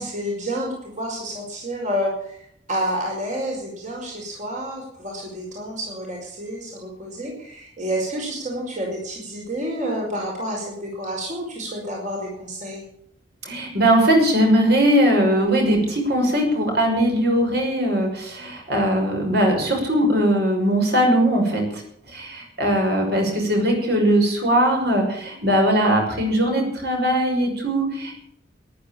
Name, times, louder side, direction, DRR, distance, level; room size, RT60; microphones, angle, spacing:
voice 1, 0.0-2.4 2.7-12.8, equal, 40° right, -1 dB, 5.3 m, -29 dB
voice 2, 13.4-21.6 22.1-28.1, right 1 dB, 60° right, 2 dB, 6.1 m, -20 dB
14.5 x 11.0 x 8.7 m, 0.68 s
head